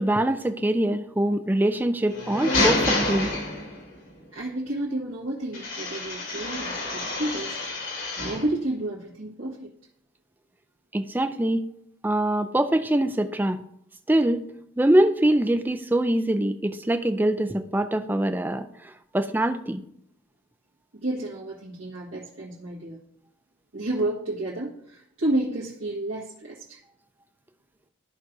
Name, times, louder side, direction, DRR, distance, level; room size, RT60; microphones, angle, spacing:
voice 1, 0.0-3.3 10.9-11.7 12.0-13.6 14.1-14.4 14.8-19.8, right 1 dB, 10° right, 9 dB, 0.4 m, -23 dB
sound 1, 2.0-4.0 5.5-8.5, left 2 dB, 80° left, 3.1 m, -28 dB
voice 2, 4.3-7.6 8.2-9.7 20.9-23.0 23.7-26.8, right 1 dB, 90° right, -7 dB, 1.7 m, -31 dB
14.0 x 5.9 x 2.7 m, 0.73 s
head